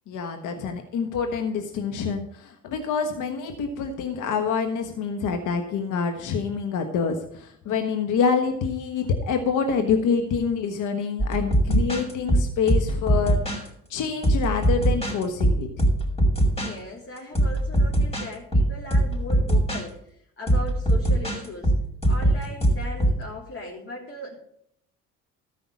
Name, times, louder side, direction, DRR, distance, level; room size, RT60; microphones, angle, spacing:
voice 1, 0.1-15.7, left 5 dB, 65° left, 5 dB, 1.4 m, -26 dB
sound 1, 11.2-13.7 14.2-16.7 17.2-19.8 20.5-23.2, right 1 dB, 20° left, 5.3 m, -22 dB
voice 2, 16.5-21.7 22.1-24.4, left 1 dB, 40° left, -4 dB, 3.7 m, -38 dB
13.5 x 5.7 x 7.2 m, 0.70 s
supercardioid pair, 70°, 33 cm